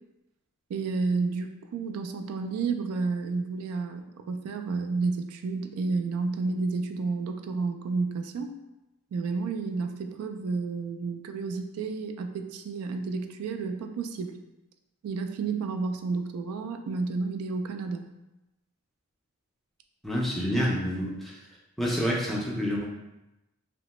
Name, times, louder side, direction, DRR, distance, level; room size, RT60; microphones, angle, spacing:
voice 1, 0.7-8.5 9.1-14.4 15.0-18.1, right 4 dB, 85° right, 11 dB, 0.3 m, -31 dB
voice 2, 20.0-21.4 21.8-22.9, equal, ahead, -4 dB, 0.4 m, -28 dB
2.9 x 2.1 x 2.9 m, 0.96 s
head